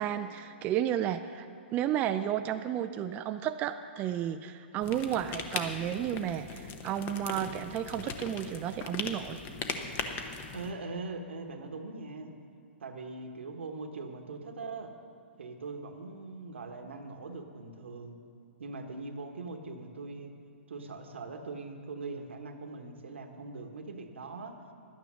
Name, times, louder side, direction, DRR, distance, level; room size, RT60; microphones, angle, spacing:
voice 1, 0.0-1.5 1.7-9.4, right 10 dB, 25° right, 8 dB, 0.3 m, -32 dB
sound 1, 4.8-10.7, left 5 dB, 30° left, 0.9 m, -39 dB
voice 2, 10.5-12.3 12.8-14.9 15.4-18.2 18.6-20.3 20.7-24.6, right 3 dB, 85° right, 5 dB, 1.2 m, -41 dB
11.5 x 9.5 x 6.1 m, 2.5 s
hypercardioid pair, 130°, 6 cm